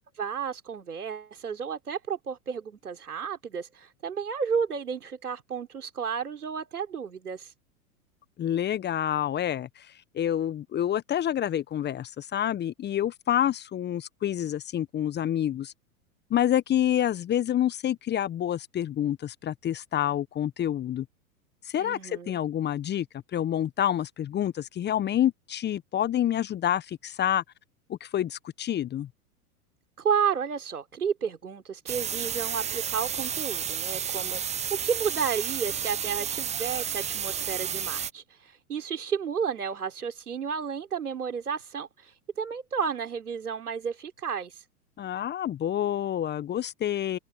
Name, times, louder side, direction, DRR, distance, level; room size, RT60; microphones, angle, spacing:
voice 1, 0.2-7.5 21.8-22.4 30.0-34.4 34.7-42.1 42.4-44.6, right 6 dB, 80° right, 3.8 m, -32 dB
voice 2, 8.4-9.9 10.1-15.7 16.3-21.1 21.7-23.1 23.3-27.4 27.9-29.1 45.0-47.2, left 11 dB, 25° left, 1.1 m, -28 dB
sound 1, 31.9-38.1, right 8 dB, 15° right, 0.8 m, -31 dB
figure-of-eight pair, 95°, 45 cm